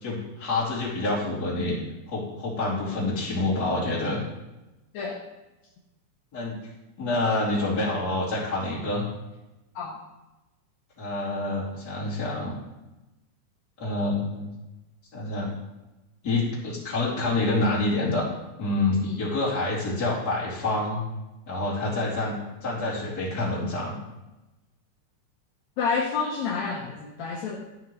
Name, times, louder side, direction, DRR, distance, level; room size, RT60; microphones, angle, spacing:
voice 1, 0.0-1.8 2.1-4.2 6.3-6.6 7.0-9.0 11.0-12.6 13.8-14.5 15.1-15.5 16.2-18.2 18.6-21.0 21.5-22.3 22.6-24.0, left 2 dB, 30° left, -7 dB, 2.9 m, -27 dB
voice 2, 25.8-27.6, left 5 dB, 70° left, -1 dB, 1.9 m, -29 dB
12.5 x 6.0 x 3.1 m, 1.0 s
omnidirectional pair, 3.6 m